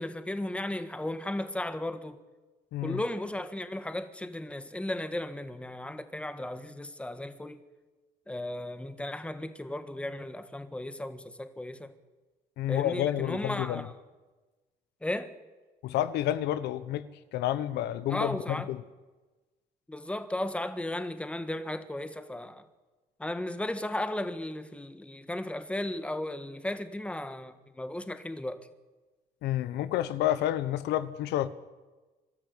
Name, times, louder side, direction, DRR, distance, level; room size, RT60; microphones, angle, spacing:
voice 1, 0.0-2.2 2.8-7.6 8.3-11.9 12.7-13.9 15.0-15.3 18.1-18.7 19.9-22.6 23.2-28.7, left 1 dB, 5° left, 1.5 m, -35 dB
voice 2, 12.6-13.8 15.8-17.1 17.3-18.8 29.4-31.5, left 12 dB, 80° left, 1.0 m, -29 dB
24.5 x 13.5 x 8.5 m
cardioid pair, 110°, 17 cm